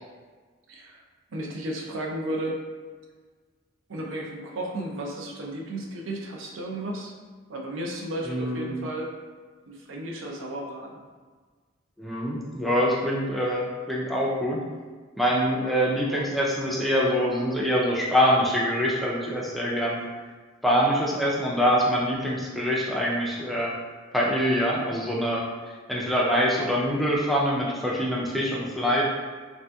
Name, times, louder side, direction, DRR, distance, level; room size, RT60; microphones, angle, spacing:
voice 1, 0.7-1.0 1.3-2.6 3.9-7.1 7.5-9.1 9.7-11.0, right 1 dB, 80° right, -1 dB, 0.5 m, -33 dB
voice 2, 8.3-8.7 12.0-14.6 15.2-20.0 20.6-23.7 24.1-29.0, equal, ahead, -5 dB, 0.4 m, -25 dB
3.4 x 2.7 x 2.2 m, 1.5 s
head